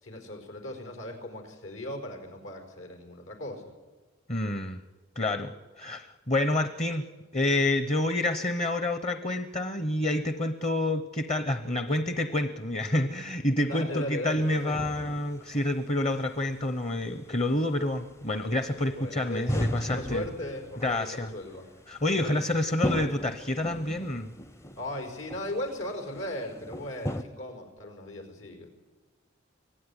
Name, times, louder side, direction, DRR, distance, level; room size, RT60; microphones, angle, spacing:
voice 1, 0.0-3.6 13.7-14.9 18.9-21.7 22.1-22.4 24.8-28.7, left 1 dB, 80° left, 5 dB, 4.8 m, -37 dB
voice 2, 4.3-4.8 5.2-7.1 7.3-20.2 20.8-21.3 21.9-24.3, left 1 dB, 35° left, 9 dB, 0.9 m, -28 dB
sound 1, 14.4-27.2, equal, 15° left, 0.6 m, -37 dB
24.5 x 16.0 x 10.0 m, 1.3 s
head